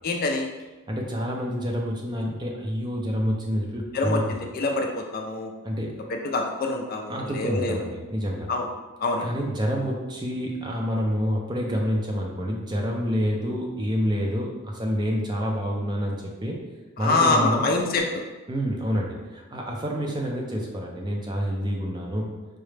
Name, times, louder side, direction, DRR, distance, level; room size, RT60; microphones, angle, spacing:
voice 1, 0.0-0.5 3.9-5.5 6.3-7.9 8.5-8.7 9.0-9.3 17.0-18.2, left 3 dB, 45° left, 2 dB, 0.4 m, -25 dB
voice 2, 0.9-4.2 5.6-5.9 7.1-8.5 9.2-16.6 17.0-17.7 18.5-22.3, equal, 20° right, -1 dB, 0.4 m, -28 dB
4.7 x 2.1 x 3.2 m, 1.2 s
head